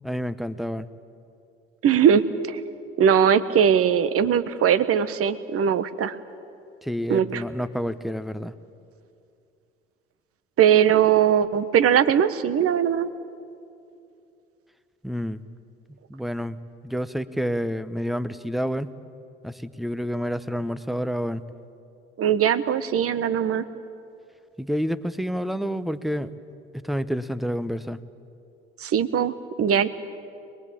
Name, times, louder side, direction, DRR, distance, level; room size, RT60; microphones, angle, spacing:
voice 1, 0.0-0.9 6.8-8.5 15.0-15.4 16.1-18.9 19.4-21.4 24.6-26.3 26.7-28.0, equal, ahead, 14 dB, 0.9 m, -29 dB
voice 2, 1.8-2.6 3.0-6.2 7.1-7.4 10.6-13.1 22.2-23.6 28.8-29.9, right 8 dB, 45° right, 12 dB, 1.3 m, -20 dB
22.5 x 21.0 x 8.5 m, 2.6 s
hypercardioid pair, 60°, 31 cm